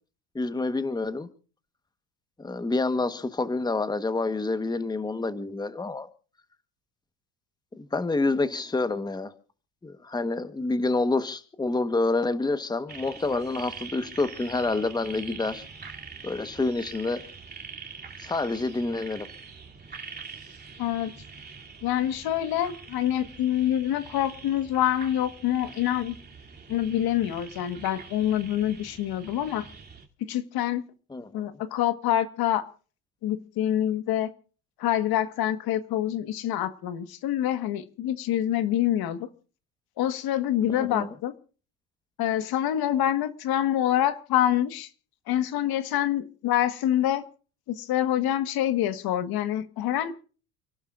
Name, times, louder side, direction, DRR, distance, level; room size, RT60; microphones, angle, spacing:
voice 1, 0.3-1.3 2.4-6.1 7.7-9.3 9.8-15.6 16.2-17.2 18.2-19.3 31.1-31.5 40.7-41.1, left 3 dB, 10° left, 11 dB, 1.3 m, -28 dB
sound 1, 12.9-30.1, right 5 dB, 25° right, 3.0 m, -44 dB
voice 2, 20.8-21.1 21.8-26.1 26.7-29.7 30.2-30.8 31.3-32.6 33.2-34.3 34.8-39.3 40.0-41.3 42.2-44.9 45.3-47.2 47.7-50.1, left 11 dB, 60° left, 11 dB, 1.6 m, -26 dB
29.5 x 12.0 x 2.5 m, 0.38 s
supercardioid pair, 105°, 41 cm